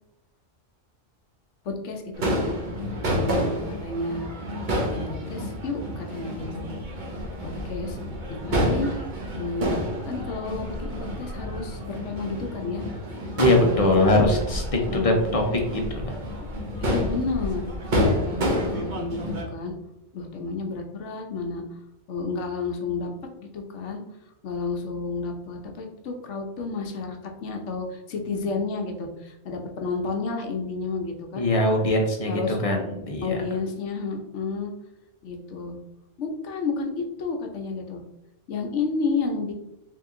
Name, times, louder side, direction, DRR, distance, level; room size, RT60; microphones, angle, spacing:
voice 1, 1.6-2.0 2.3-2.6 3.1-4.3 4.8-6.7 7.4-8.0 8.3-8.9 9.4-9.7 10.0-12.8 13.5-14.4 14.8-15.1 16.8-17.7 18.0-19.8 20.1-21.6 22.1-23.1 23.4-24.0 24.4-31.4 32.3-32.6 33.2-34.7 35.2-35.8 36.2-38.0 38.5-39.5, left 4 dB, 75° left, 3 dB, 1.0 m, -31 dB
Crowd / Fireworks, 2.1-19.4, equal, 45° right, 0.9 m, -29 dB
voice 2, 13.4-14.6 14.9-15.4 15.7-16.2 31.4-33.4, left 1 dB, 40° left, 1 dB, 0.6 m, -22 dB
3.6 x 2.9 x 3.6 m, 0.88 s
omnidirectional pair, 1.3 m